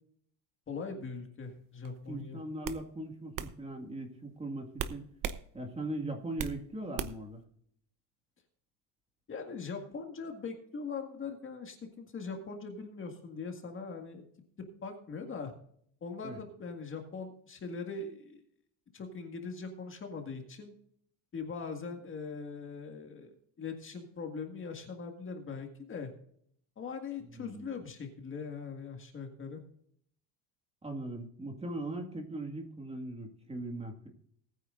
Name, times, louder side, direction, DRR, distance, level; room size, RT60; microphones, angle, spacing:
voice 1, 0.7-2.4 9.3-14.2 14.8-15.5 16.0-18.4 18.9-20.7 21.3-26.1 26.8-29.6, left 5 dB, 30° left, 4 dB, 1.9 m, -41 dB
sound 1, 1.8-2.1 2.6-2.8 3.3-3.5 4.8-5.4 5.8-6.6 7.0-7.3, right 9 dB, 50° right, 0.9 m, -36 dB
voice 2, 2.1-5.0 5.5-7.4 16.2-16.4 27.3-27.7 30.8-34.1, right 1 dB, 15° right, 3 dB, 2.0 m, -39 dB
19.5 x 9.2 x 2.6 m, 0.64 s
cardioid pair, 140°, 42 cm